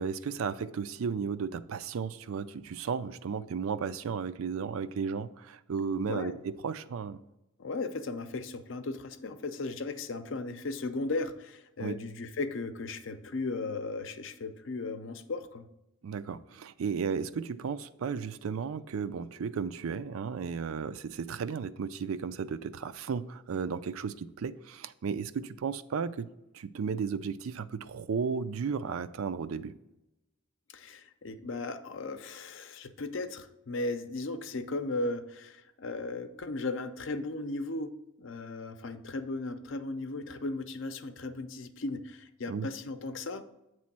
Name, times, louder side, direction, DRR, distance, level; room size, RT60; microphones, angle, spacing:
voice 1, 0.0-7.2 11.8-12.0 16.0-26.3 26.5-29.7 42.5-42.7, right 6 dB, 85° right, 13 dB, 0.4 m, -34 dB
voice 2, 6.1-6.4 7.6-15.7 30.7-37.9 38.2-43.4, left 3 dB, 65° left, 10 dB, 0.5 m, -36 dB
8.4 x 3.1 x 5.9 m, 0.94 s
head